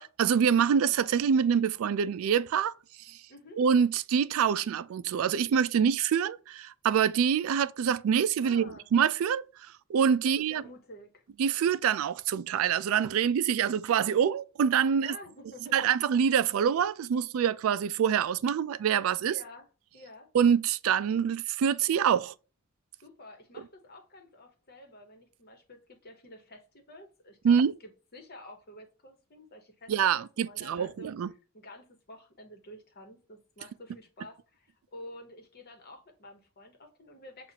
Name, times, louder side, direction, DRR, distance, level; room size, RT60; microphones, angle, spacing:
voice 1, 0.2-2.7 3.1-3.2 3.6-9.4 9.9-10.6 11.4-15.1 15.7-19.3 20.3-22.3 27.4-27.7 29.9-31.3, right 7 dB, 75° right, 0.3 m, -25 dB
voice 2, 3.3-3.6 8.4-8.9 10.2-11.2 15.0-15.9 19.3-19.7 19.9-20.3 23.0-31.1 31.5-37.5, left 1 dB, 50° left, 1.2 m, -50 dB
7.2 x 2.4 x 2.8 m
head